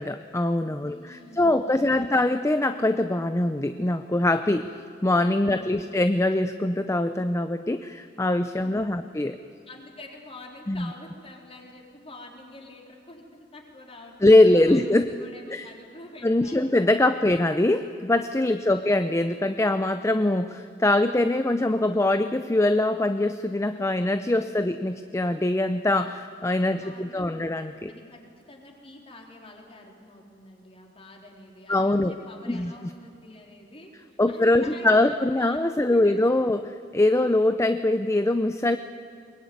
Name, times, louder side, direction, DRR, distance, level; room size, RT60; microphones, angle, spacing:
voice 1, 0.0-4.7 5.0-9.4 10.7-10.9 14.2-15.1 15.5-15.7 16.2-27.9 31.7-32.1 32.5-32.7 34.2-36.6 36.9-38.8, left 2 dB, 15° left, 9 dB, 0.5 m, -23 dB
voice 2, 0.9-2.3 5.5-6.0 8.6-9.1 9.7-16.8 17.2-17.3 18.6-19.0 26.8-27.6 27.9-33.9 34.3-36.6, left 2 dB, 30° left, 0 dB, 3.9 m, -47 dB
22.5 x 20.5 x 9.4 m, 2.5 s
head